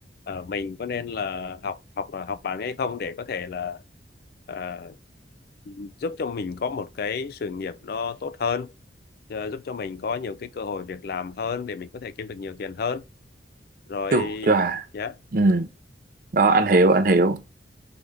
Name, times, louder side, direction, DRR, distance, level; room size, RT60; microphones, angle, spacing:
voice 1, 0.3-3.8 4.5-4.9 5.7-8.7 9.3-13.0 13.9-14.5 14.9-15.1, left 5 dB, 55° left, 0.4 m, -31 dB
voice 2, 14.1-14.8 15.3-15.7 16.3-17.4, right 3 dB, 50° right, 0.5 m, -19 dB
3.9 x 3.2 x 3.5 m
head